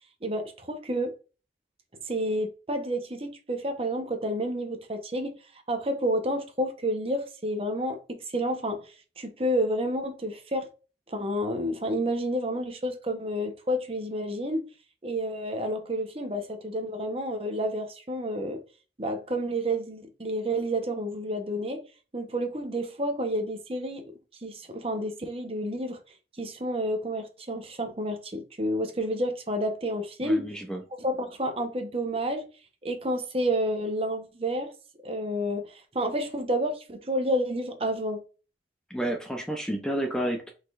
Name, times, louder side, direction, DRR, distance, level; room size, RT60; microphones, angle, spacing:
voice 1, 0.2-1.1 2.1-5.3 5.7-10.7 11.1-14.6 15.0-18.6 19.0-21.8 22.1-24.0 24.4-26.0 26.4-30.5 31.0-32.5 32.8-34.7 35.0-38.2, equal, 30° right, 0.9 m, -30 dB
voice 2, 30.2-30.8 38.9-40.5, right 1 dB, 5° left, 0.6 m, -30 dB
5.2 x 4.1 x 2.4 m
head